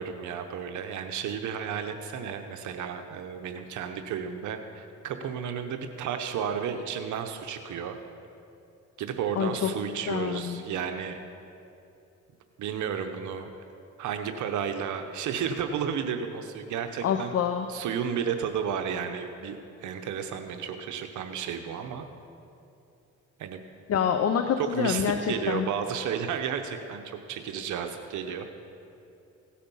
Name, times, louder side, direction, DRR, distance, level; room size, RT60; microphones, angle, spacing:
voice 1, 0.0-8.0 9.0-11.2 12.6-13.5 14.0-17.3 17.7-19.6 19.8-22.1 23.4-23.6 24.6-28.5, right 7 dB, 75° right, 6 dB, 0.8 m, -32 dB
voice 2, 9.4-9.7 10.1-10.6 17.0-17.7 23.9-25.7, left 8 dB, 55° left, 7 dB, 0.7 m, -27 dB
16.5 x 8.6 x 5.5 m, 2.7 s
cardioid pair, 90°, 30 cm